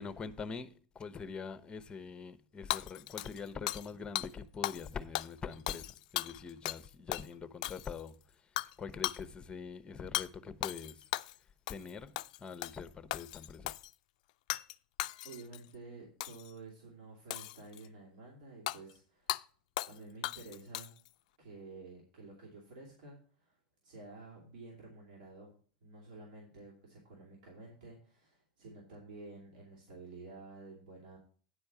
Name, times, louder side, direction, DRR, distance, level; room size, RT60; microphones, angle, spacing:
voice 1, 0.0-11.1 11.7-13.7, left 5 dB, 20° left, 0.9 m, -44 dB
Hammer / Shatter, 2.7-3.9 4.2-4.3 4.6-4.9 5.1-6.8 7.1-7.3 7.6-8.1 8.6-8.7 9.0-9.2 10.1-10.3 10.6-11.4 11.7-11.9 12.2-12.8 13.1-13.9 14.5-14.7 15.0-15.6 16.2-16.5 17.3-17.9 18.7-18.8 19.3-19.4 19.8-20.0 20.2-21.1, left 16 dB, 65° left, 0.3 m, -37 dB
voice 2, 15.2-19.4 19.9-20.9 21.4-23.6 23.8-25.5 25.8-31.2, right 3 dB, 70° right, 3.0 m, -51 dB
9.8 x 4.5 x 6.8 m
hypercardioid pair, 90°, 4 cm